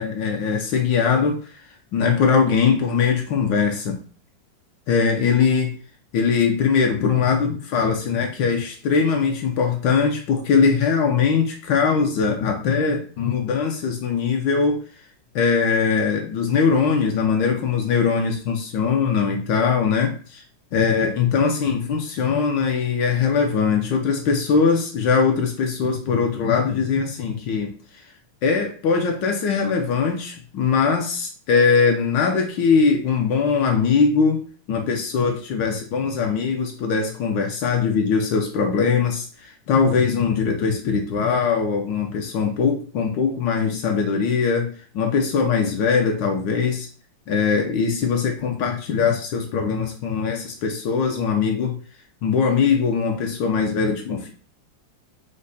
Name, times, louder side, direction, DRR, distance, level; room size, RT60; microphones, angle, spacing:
voice 1, 0.0-1.5 1.9-4.0 4.9-5.7 6.1-14.8 15.3-20.4 20.7-27.7 28.4-46.9 47.3-51.8 52.2-54.3, left 5 dB, 75° left, 2 dB, 1.3 m, -21 dB
5.2 x 2.1 x 4.0 m, 0.41 s
omnidirectional pair, 2.1 m